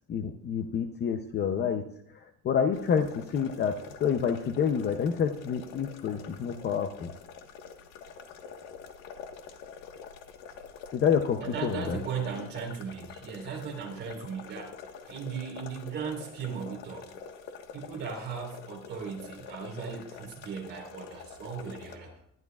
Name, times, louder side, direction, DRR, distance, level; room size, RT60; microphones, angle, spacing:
voice 1, 0.1-7.1 10.9-12.0, left 7 dB, 30° left, 6 dB, 0.7 m, -28 dB
sound 1, 2.7-22.0, left 6 dB, 75° left, 1.5 m, -46 dB
voice 2, 11.4-14.8 15.0-17.1 17.7-22.2, right 6 dB, 30° right, -1 dB, 4.1 m, -37 dB
19.5 x 12.0 x 2.4 m, 0.71 s
cardioid pair, 170°, 35 cm